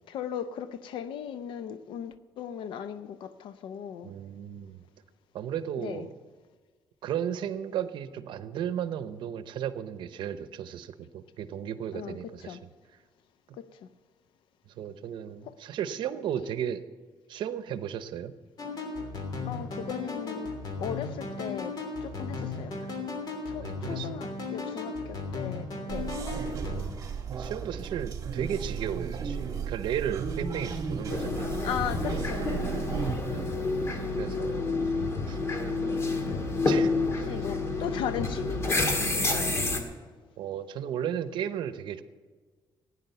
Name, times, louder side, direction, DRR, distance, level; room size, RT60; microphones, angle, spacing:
voice 1, 0.1-4.1 5.8-6.1 11.9-12.6 13.6-13.9 15.4-15.6 19.4-20.5 20.8-22.8 23.5-26.1 31.6-32.6 34.3-34.9 37.1-39.5, left 8 dB, 80° left, 0.7 m, -37 dB
voice 2, 4.0-4.8 5.3-6.1 7.0-12.6 14.8-16.8 17.3-18.3 23.6-24.1 27.3-31.5 33.3-33.6 34.2-34.6 35.3-35.4 36.6-36.9 40.4-42.0, right 9 dB, 70° right, 0.8 m, -34 dB
sound 1, 18.6-26.8, left 3 dB, 50° left, 3.1 m, -36 dB
sound 2, 25.9-33.2, right 6 dB, 40° right, 1.9 m, -34 dB
sound 3, 31.1-39.8, left 3 dB, 30° left, 1.8 m, -29 dB
15.5 x 9.9 x 6.8 m
cardioid pair, 140°, 8 cm